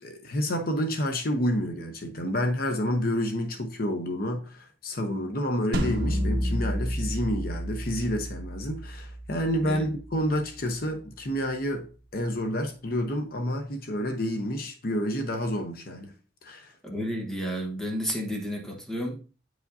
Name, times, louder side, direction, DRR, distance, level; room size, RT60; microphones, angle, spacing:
voice 1, 0.0-11.9 12.1-16.1 16.4-16.7, equal, 55° left, 0.8 m, -29 dB
sound 1, 5.7-10.8, equal, 60° right, 1.2 m, -31 dB
voice 2, 16.8-19.2, equal, 5° left, 1.2 m, -31 dB
9.2 x 4.9 x 2.7 m
head